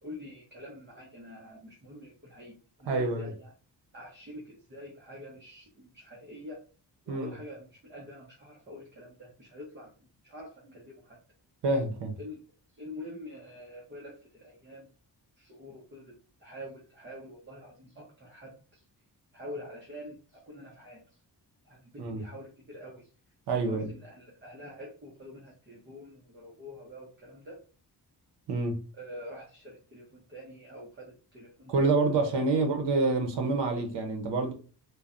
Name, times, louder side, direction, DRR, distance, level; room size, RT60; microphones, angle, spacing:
voice 1, 0.0-3.5 3.9-6.6 7.1-11.2 12.2-12.4 12.7-14.9 15.4-18.8 19.3-21.2 21.6-23.1 23.5-27.6 28.9-31.7 32.2-32.3 32.5-32.7, left 1 dB, 25° right, 0.6 m, -46 dB
voice 2, 2.9-3.3 7.1-7.3 11.6-12.2 22.0-22.2 23.5-23.9 28.5-28.8 31.7-34.5, right 3 dB, 80° right, 0.7 m, -27 dB
3.1 x 2.1 x 2.4 m
wide cardioid pair, 150°, 41 cm